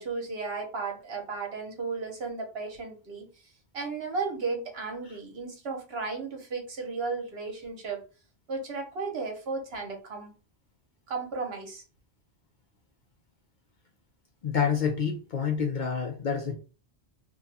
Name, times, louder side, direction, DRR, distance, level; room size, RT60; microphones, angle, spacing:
voice 1, 0.0-3.3 3.7-8.0 8.5-10.3 11.1-11.8, right 4 dB, 65° right, 1.1 m, -34 dB
voice 2, 14.4-16.6, left 6 dB, 55° left, 0.6 m, -28 dB
2.6 x 2.3 x 4.0 m
omnidirectional pair, 1.1 m